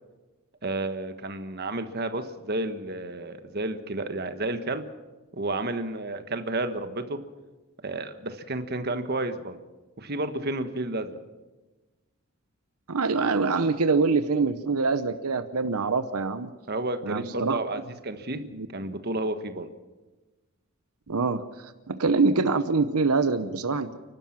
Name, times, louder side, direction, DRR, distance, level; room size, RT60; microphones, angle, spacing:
voice 1, 0.6-4.9 5.3-7.2 7.8-9.6 10.0-11.1 16.7-18.4 18.7-19.7, right 2 dB, 45° right, 9 dB, 1.4 m, -31 dB
voice 2, 12.9-16.5 17.0-17.6 18.5-18.7 21.1-23.9, right 4 dB, 85° right, 11 dB, 0.9 m, -25 dB
29.0 x 12.5 x 7.4 m, 1.2 s
head